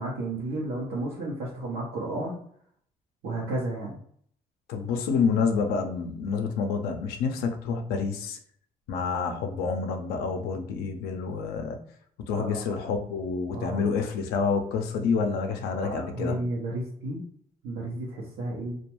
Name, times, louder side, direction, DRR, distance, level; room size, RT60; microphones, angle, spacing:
voice 1, 0.0-2.4 3.2-4.0 12.3-12.8 13.5-13.9 15.7-17.2 17.6-18.8, right 2 dB, 90° right, -6 dB, 0.7 m, -32 dB
voice 2, 4.7-8.4 8.9-11.8 12.3-16.4, left 5 dB, 90° left, 6 dB, 0.4 m, -28 dB
2.3 x 2.2 x 2.9 m, 0.63 s
cardioid pair, 80°, 16 cm